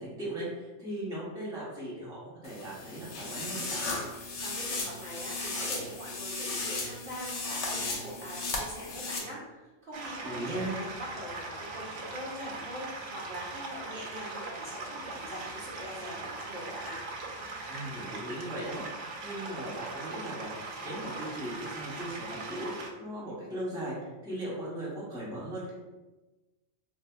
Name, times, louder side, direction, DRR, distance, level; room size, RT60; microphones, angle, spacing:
voice 1, 0.0-3.8 10.2-10.7 17.7-18.8 19.2-22.7 23.0-25.7, right 1 dB, 5° right, -8 dB, 0.8 m, -38 dB
sound 1, 2.4-9.2, left 3 dB, 70° left, 1.0 m, -36 dB
voice 2, 4.4-17.0, equal, 50° right, -7 dB, 1.0 m, -42 dB
sound 2, 9.9-22.9, right 3 dB, 85° right, 1.0 m, -40 dB
3.9 x 2.6 x 2.2 m, 1.1 s
omnidirectional pair, 1.2 m